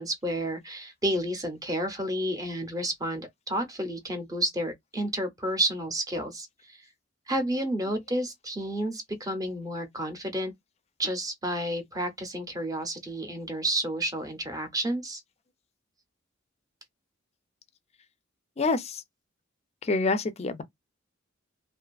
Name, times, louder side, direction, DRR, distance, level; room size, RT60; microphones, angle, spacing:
voice 1, 0.0-6.8 7.3-10.5 11.0-15.2, right 1 dB, 20° right, 0.7 m, -31 dB
voice 2, 18.6-19.0 19.8-20.6, left 3 dB, 30° left, 0.4 m, -27 dB
2.6 x 2.4 x 2.3 m
head